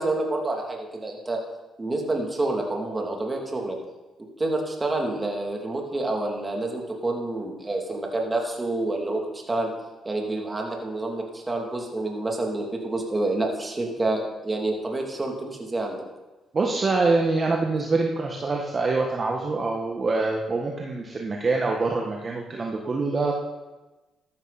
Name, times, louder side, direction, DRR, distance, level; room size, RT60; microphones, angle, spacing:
voice 1, 0.0-1.4 1.8-3.8 4.4-9.7 10.0-16.0, right 2 dB, 25° right, 0 dB, 2.9 m, -28 dB
voice 2, 16.5-23.4, right 3 dB, 40° right, 0 dB, 1.6 m, -25 dB
14.0 x 12.0 x 4.3 m, 1.1 s
cardioid pair, 75°, 0 cm